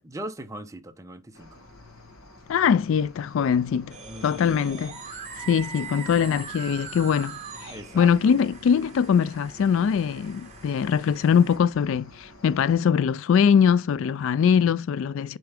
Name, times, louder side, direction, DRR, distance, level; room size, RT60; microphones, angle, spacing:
voice 1, 0.0-1.6 4.1-4.7 7.7-8.1, right 1 dB, 15° right, 0.7 m, -39 dB
Cricket, 1.3-12.7, left 2 dB, 80° left, 2.2 m, -49 dB
voice 2, 2.5-4.0 4.2-5.0 5.5-15.4, left 7 dB, 60° left, 0.3 m, -22 dB
sound 1, 3.9-11.6, right 5 dB, 30° right, 1.5 m, -42 dB
9.3 x 4.5 x 3.4 m
head